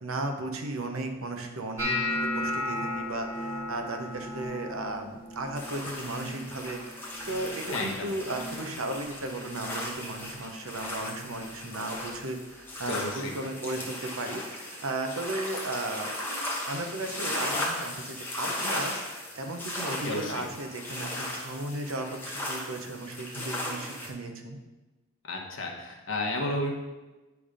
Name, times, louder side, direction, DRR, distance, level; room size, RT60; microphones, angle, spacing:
voice 1, 0.0-16.1 16.7-18.9 19.3-24.6, right 2 dB, 75° right, 5 dB, 0.9 m, -35 dB
sound 1, 1.8-7.9 8.1-8.7 9.0-9.6 10.2-10.4 12.1-12.2, left 1 dB, 15° right, 1.8 m, -35 dB
sound 2, 5.6-24.1, left 1 dB, 10° left, 1.0 m, -36 dB
voice 2, 7.7-8.1 12.9-13.3 20.0-20.4 25.3-26.7, left 1 dB, 60° left, 0 dB, 1.2 m, -32 dB
9.4 x 3.5 x 5.0 m, 1.2 s
head